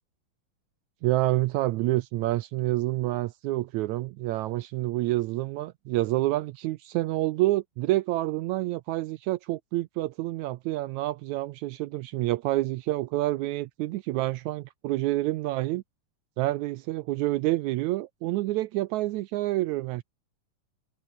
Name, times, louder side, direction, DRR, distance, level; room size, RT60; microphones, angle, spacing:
voice 1, 1.0-15.8 16.4-20.0, right 17 dB, 85° right, 1.7 m, -28 dB
omnidirectional pair, 3.9 m